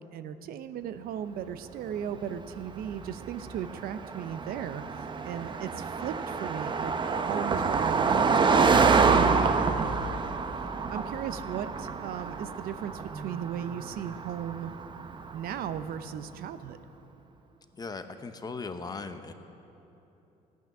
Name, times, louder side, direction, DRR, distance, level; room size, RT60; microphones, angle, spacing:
voice 1, 0.0-10.2 10.9-14.7 15.3-16.8, right 9 dB, 65° right, 12 dB, 0.6 m, -37 dB
Car passing by, 2.2-15.9, right 5 dB, 30° right, 0.7 m, -27 dB
voice 2, 17.7-19.3, left 4 dB, 25° left, 9 dB, 0.8 m, -38 dB
14.5 x 9.4 x 6.0 m, 3.0 s
cardioid pair, 105°, 17 cm